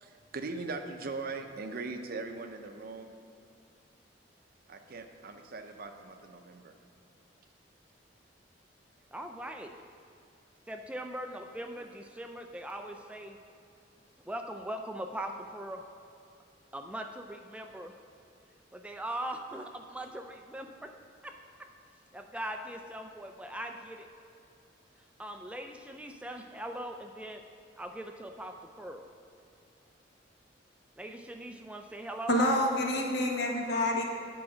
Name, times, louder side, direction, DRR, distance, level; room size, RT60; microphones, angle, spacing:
voice 1, 0.0-3.1 4.7-6.7, right 3 dB, 55° right, 6 dB, 0.6 m, -40 dB
voice 2, 9.1-9.8 10.7-13.4 14.2-15.8 16.7-17.9 18.7-20.9 21.2-21.7 22.1-24.1 25.2-27.4 27.8-29.1 31.0-32.4 33.2-33.3, right 1 dB, 5° right, 4 dB, 0.3 m, -40 dB
voice 3, 32.3-34.0, left 1 dB, 65° left, 1 dB, 1.2 m, -27 dB
8.7 x 4.8 x 6.1 m, 2.6 s
head